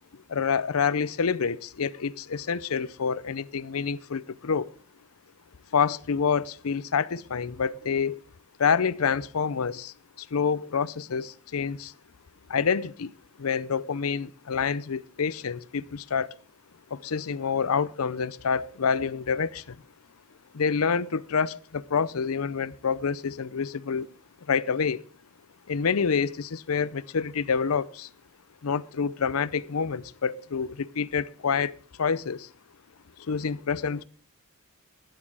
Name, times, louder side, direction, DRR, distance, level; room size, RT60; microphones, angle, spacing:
voice 1, 0.3-4.7 5.7-8.2 8.6-11.9 12.5-16.3 16.9-19.8 20.5-24.1 24.5-25.0 25.7-28.1 28.6-32.5 33.2-34.0, left 6 dB, 90° left, 0.6 m, -27 dB
11.5 x 11.0 x 4.8 m
head